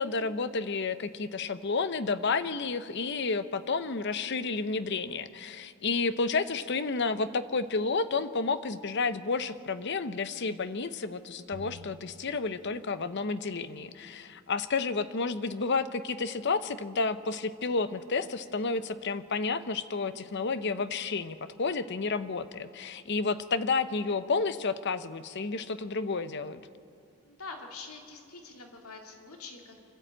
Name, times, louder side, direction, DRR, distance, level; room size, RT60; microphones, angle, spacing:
voice 1, 0.0-26.6, left 4 dB, 50° left, 13 dB, 0.7 m, -31 dB
sound 1, 11.5-13.3, right 1 dB, 70° right, 1.0 m, -50 dB
voice 2, 27.2-29.8, left 4 dB, 85° left, 2 dB, 2.5 m, -45 dB
25.0 x 13.0 x 8.8 m, 2.4 s
head